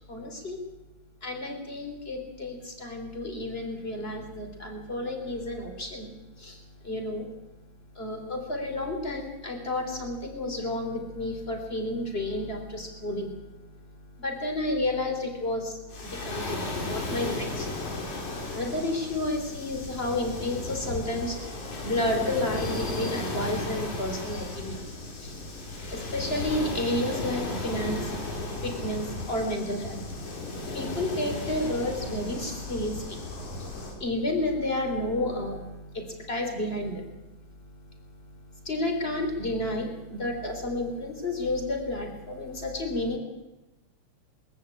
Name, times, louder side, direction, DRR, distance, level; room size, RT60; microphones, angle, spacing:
voice 1, 0.1-0.6 1.2-6.1 6.4-7.3 8.0-13.4 14.2-17.7 18.5-21.4 21.8-24.8 25.2-25.4 25.9-28.2 28.6-30.0 30.7-33.2 34.0-37.1 38.6-43.2, left 1 dB, 20° left, 3 dB, 3.7 m, -31 dB
Waves surf, 15.9-34.0, left 2 dB, 90° left, 4.9 m, -35 dB
22.5 x 14.0 x 8.5 m, 1.0 s
omnidirectional pair, 3.4 m